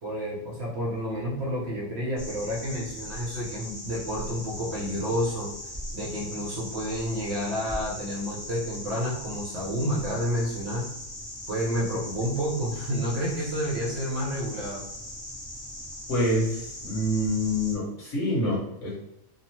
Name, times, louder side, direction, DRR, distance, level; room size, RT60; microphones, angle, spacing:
voice 1, 0.0-5.5 5.9-10.9 11.5-14.8, equal, 55° right, -4 dB, 0.9 m, -30 dB
sound 1, 2.2-17.7, left 1 dB, 30° left, 1.0 m, -40 dB
voice 2, 16.1-18.9, left 1 dB, 60° left, -5 dB, 1.3 m, -26 dB
2.8 x 2.0 x 2.9 m, 0.80 s
omnidirectional pair, 1.5 m